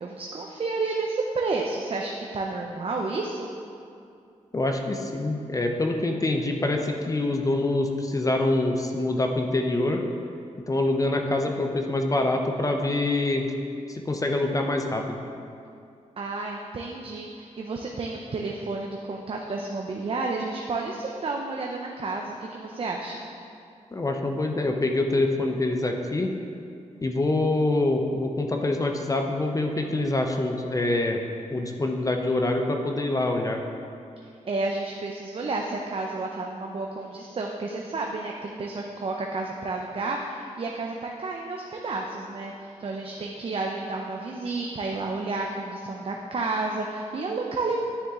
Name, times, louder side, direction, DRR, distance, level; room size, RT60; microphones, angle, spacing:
voice 1, 0.0-3.5 16.2-23.2 34.4-47.8, right 3 dB, 45° right, 0 dB, 0.6 m, -31 dB
voice 2, 4.5-10.0 10.7-13.5 13.9-15.2 23.9-26.3 27.0-31.2 31.5-33.6, left 2 dB, 25° left, 3 dB, 0.7 m, -25 dB
9.6 x 6.3 x 3.7 m, 2.5 s
cardioid pair, 90°, 13 cm